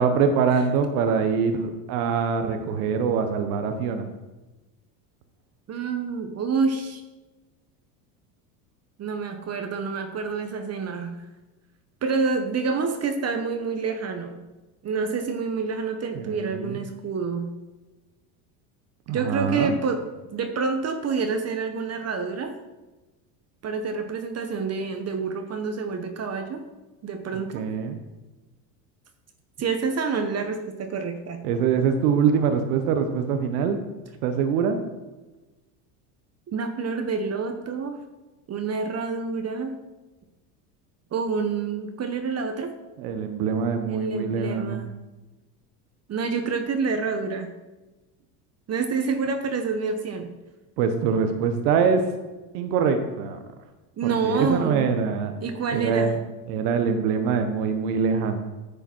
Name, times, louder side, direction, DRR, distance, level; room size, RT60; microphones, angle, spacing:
voice 1, 0.0-4.1 16.1-16.8 19.1-19.8 27.5-28.0 31.4-33.8 34.2-34.8 43.0-44.8 50.8-52.0 52.5-53.4 54.0-55.3 55.7-56.2 56.5-58.4, right 6 dB, 75° right, 7 dB, 1.1 m, -24 dB
voice 2, 5.7-7.0 9.0-11.2 12.0-14.4 14.8-17.5 19.1-20.0 20.3-22.5 23.6-26.6 27.0-27.6 29.6-31.5 36.5-38.0 38.5-39.7 41.1-42.7 43.8-45.0 46.1-47.5 48.7-50.3 54.0-54.8 55.4-56.2, right 5 dB, 35° right, 6 dB, 1.0 m, -28 dB
10.0 x 7.0 x 4.4 m, 1.1 s
supercardioid pair, 100°, 46 cm